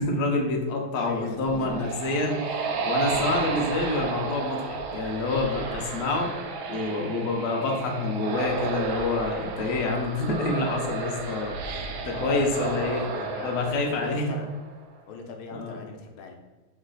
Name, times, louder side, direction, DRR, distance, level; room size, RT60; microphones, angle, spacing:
voice 1, 0.0-2.4 2.8-6.3 6.7-11.8 12.0-13.1 13.4-14.4 15.5-15.7, left 2 dB, 65° left, 0 dB, 1.0 m, -27 dB
voice 2, 0.9-2.5 12.1-13.6 14.0-14.5 15.1-16.3, left 4 dB, 80° left, 2 dB, 1.4 m, -39 dB
sound 1, 1.3-14.8, right 4 dB, 80° right, 1.3 m, -32 dB
3.2 x 3.2 x 3.8 m, 1.2 s
omnidirectional pair, 2.3 m